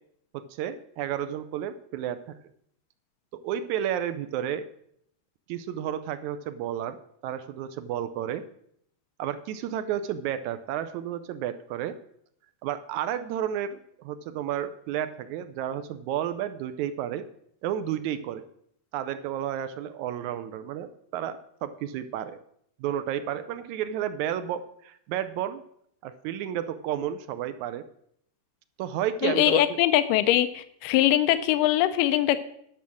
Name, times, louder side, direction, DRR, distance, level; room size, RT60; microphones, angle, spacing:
voice 1, 0.3-2.2 3.4-4.7 5.5-7.0 7.2-8.4 9.2-11.9 12.6-17.3 17.6-18.4 18.9-22.4 22.8-25.6 26.0-27.8 28.8-29.8, right 10 dB, 80° right, 12 dB, 1.8 m, -31 dB
voice 2, 29.2-32.4, left 13 dB, 90° left, 11 dB, 2.2 m, -22 dB
10.5 x 6.2 x 7.0 m, 0.70 s
omnidirectional pair, 3.8 m